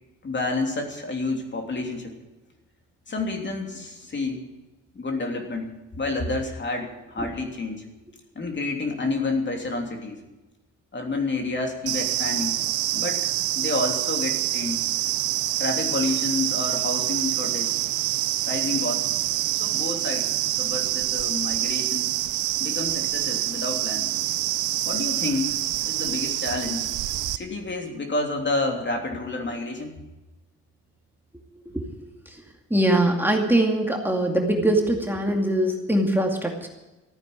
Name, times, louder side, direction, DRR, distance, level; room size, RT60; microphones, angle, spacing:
voice 1, 0.2-2.1 3.1-4.4 4.9-5.7 6.0-7.9 8.3-10.2 10.9-12.5 12.9-13.3 13.5-14.8 15.6-17.7 18.5-19.1 19.5-20.3 20.6-22.1 22.6-24.1 24.8-26.9 27.3-29.9, left 3 dB, 35° left, 3 dB, 3.2 m, -29 dB
sound 1, 11.9-27.4, right 15 dB, 90° right, 0.7 m, -26 dB
voice 2, 31.7-32.1 32.7-36.7, right 1 dB, 5° right, 1 dB, 2.4 m, -22 dB
15.0 x 9.3 x 9.5 m, 1.1 s
cardioid pair, 90°, 30 cm